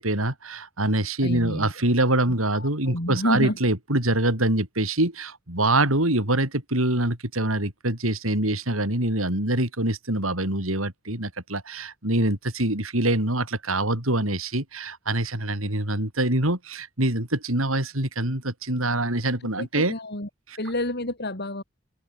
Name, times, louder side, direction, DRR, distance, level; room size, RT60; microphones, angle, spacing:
voice 1, 0.0-19.9 20.5-20.6, right 1 dB, 85° right, 6.1 m, -25 dB
voice 2, 1.2-1.7 2.5-3.6 19.6-20.3 20.6-21.6, left 1 dB, 55° left, 6.7 m, -29 dB
open air
head